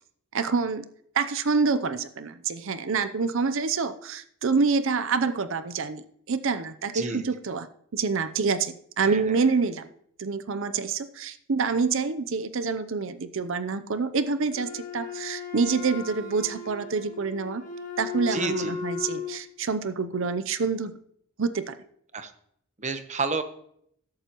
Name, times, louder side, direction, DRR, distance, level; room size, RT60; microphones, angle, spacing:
voice 1, 0.3-0.8 1.1-7.7 7.9-9.9 10.2-17.6 18.0-20.9 21.4-21.8, right 4 dB, 60° right, 12 dB, 0.6 m, -27 dB
voice 2, 9.0-9.4 18.3-18.8 22.1-22.3 22.8-23.4, right 4 dB, 35° right, 9 dB, 1.0 m, -30 dB
Wind instrument woodwind instrument, 14.5-19.4, left 6 dB, 35° left, 1.7 m, -36 dB
14.0 x 11.5 x 3.0 m, 0.67 s
head